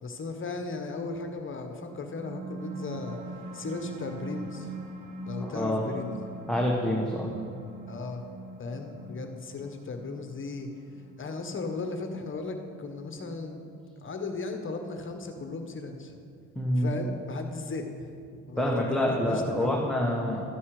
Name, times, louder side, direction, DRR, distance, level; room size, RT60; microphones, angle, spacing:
voice 1, 0.0-3.2 3.5-4.7 5.3-6.1 7.9-8.2 8.6-10.7 11.2-13.6 14.0-16.1 16.8-19.8, left 3 dB, 40° left, 5 dB, 1.4 m, -36 dB
sound 1, 1.9-12.8, right 2 dB, 75° right, 1.9 m, -42 dB
voice 2, 5.4-5.8 6.5-7.3 16.5-16.9 18.6-20.5, left 1 dB, ahead, -2 dB, 1.4 m, -27 dB
13.0 x 9.7 x 5.0 m, 2.4 s
cardioid pair, 90°, 30 cm